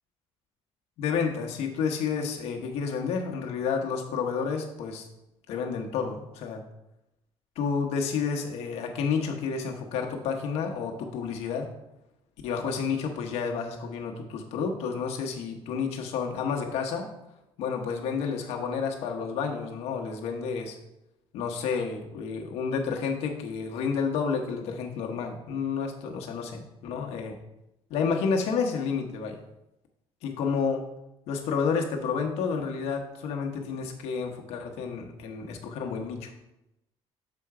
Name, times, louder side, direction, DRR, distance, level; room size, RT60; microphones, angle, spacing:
voice 1, 1.0-5.1 5.5-6.6 7.6-11.7 12.4-17.1 17.6-20.8 21.3-27.4 27.9-29.4 30.2-30.8 31.3-36.3, left 5 dB, 80° left, 2 dB, 1.1 m, -30 dB
7.0 x 4.4 x 4.8 m, 0.90 s
cardioid pair, 170°, 11 cm